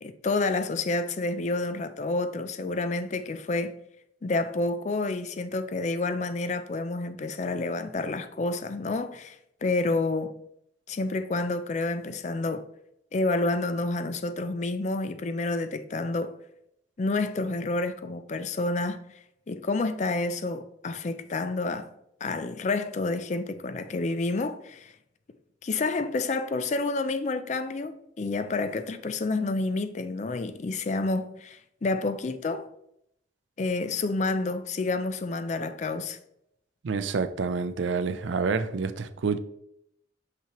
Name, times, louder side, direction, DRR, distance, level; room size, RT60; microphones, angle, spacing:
voice 1, 0.0-3.7 4.2-10.4 10.9-12.7 13.1-16.3 17.0-19.0 19.5-21.9 22.2-24.9 25.6-32.7 33.6-36.2, left 3 dB, 40° left, 0.4 m, -29 dB
voice 2, 36.8-39.4, right 5 dB, 90° right, 0.4 m, -28 dB
5.9 x 5.7 x 3.0 m
head